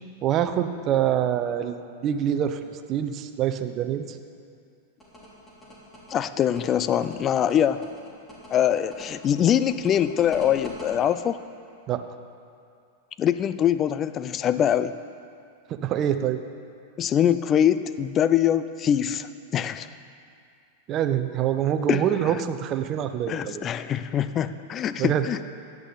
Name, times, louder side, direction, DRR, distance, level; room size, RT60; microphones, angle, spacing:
voice 1, 0.2-4.2 11.9-12.0 15.7-16.4 20.9-23.7 25.0-25.3, right 10 dB, 35° right, 9 dB, 0.8 m, -25 dB
sound 1, 5.0-10.9, left 1 dB, 15° left, 3.6 m, -44 dB
voice 2, 6.1-7.8 8.5-11.4 13.2-15.0 17.0-19.9 21.9-22.0 23.3-25.4, left 9 dB, 30° left, 13 dB, 0.5 m, -23 dB
16.0 x 10.5 x 4.1 m, 2.4 s
hypercardioid pair, 100°, 0 cm